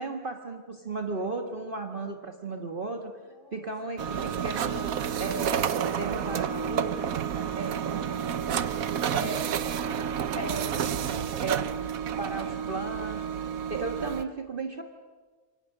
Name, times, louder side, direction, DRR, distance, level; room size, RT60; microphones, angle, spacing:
voice 1, 0.0-3.2 3.5-7.0 7.6-7.8 9.1-9.4 10.4-10.8 11.4-11.6 12.2-13.2 13.7-14.8, right 3 dB, 40° right, 5 dB, 1.6 m, -35 dB
voice 2, 3.2-4.0 6.2-10.2 12.2-12.9, equal, 40° left, -1 dB, 7.0 m, -55 dB
sound 1, 4.0-14.2, right 8 dB, 85° right, 1.4 m, -30 dB
28.0 x 24.5 x 6.6 m, 1.5 s
omnidirectional pair, 1.4 m